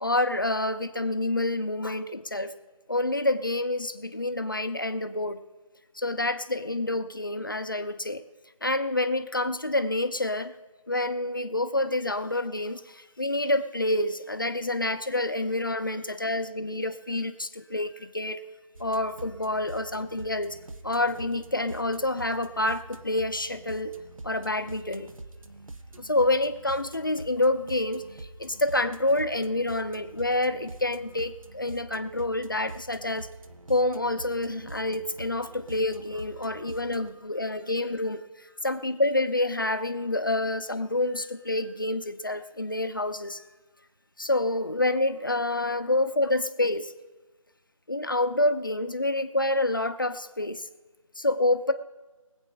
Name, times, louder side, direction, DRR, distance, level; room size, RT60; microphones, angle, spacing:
voice 1, 0.0-2.5 2.9-5.4 5.9-8.2 8.6-10.5 10.9-18.4 18.8-20.6 20.8-23.9 24.2-25.1 26.0-33.3 33.7-38.2 38.6-43.4 44.2-46.9 47.9-50.6 51.2-51.7, left 2 dB, 35° left, 9 dB, 0.7 m, -28 dB
sound 1, 18.7-37.1, right 2 dB, 70° right, 0.9 m, -45 dB
24.5 x 8.2 x 2.3 m, 1.2 s
figure-of-eight pair, 175°, 18 cm